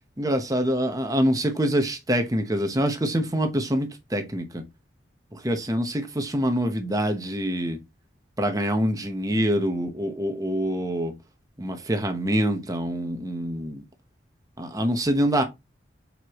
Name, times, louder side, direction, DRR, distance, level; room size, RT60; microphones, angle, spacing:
voice 1, 0.2-4.6 5.3-7.8 8.4-11.2 11.6-13.8 14.6-15.4, equal, 20° right, 1.0 m, -25 dB
6.6 x 4.7 x 3.0 m
head